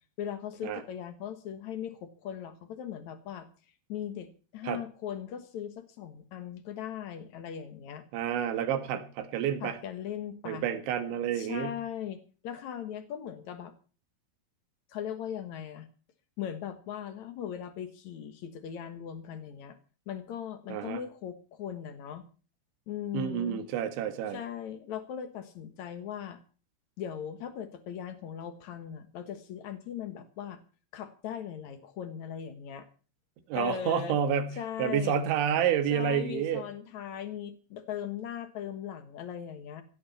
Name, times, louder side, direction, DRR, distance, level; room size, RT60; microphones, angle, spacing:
voice 1, 0.2-3.5 3.9-8.0 9.6-10.7 11.3-13.7 14.9-15.9 16.4-19.8 20.1-22.3 22.9-23.6 24.3-26.4 27.0-30.6 30.9-32.9 33.5-34.2 34.6-35.2 35.9-39.8, left 9 dB, 90° left, 9 dB, 1.6 m, -39 dB
voice 2, 8.1-9.8 10.5-11.8 20.7-21.0 23.1-24.4 33.5-36.6, right 8 dB, 70° right, 10 dB, 3.9 m, -29 dB
17.0 x 15.0 x 4.3 m, 0.38 s
omnidirectional pair, 5.8 m